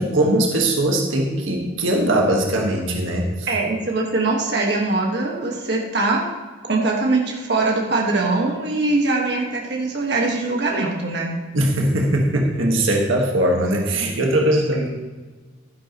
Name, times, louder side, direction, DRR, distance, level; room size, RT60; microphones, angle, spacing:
voice 1, 0.0-3.5 11.5-14.9, right 1 dB, 85° right, 0 dB, 1.7 m, -20 dB
voice 2, 3.5-6.2 6.7-11.3, right 3 dB, 55° right, -1 dB, 1.6 m, -22 dB
12.0 x 10.5 x 3.1 m, 1.3 s
head